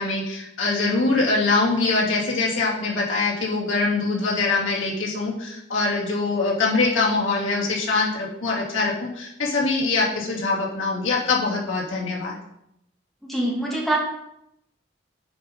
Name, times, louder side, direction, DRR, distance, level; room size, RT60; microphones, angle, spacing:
voice 1, 0.0-12.3, left 3 dB, 90° left, -4 dB, 2.9 m, -23 dB
voice 2, 13.2-14.0, right 1 dB, ahead, -3 dB, 2.2 m, -24 dB
9.2 x 5.7 x 5.4 m, 0.80 s
head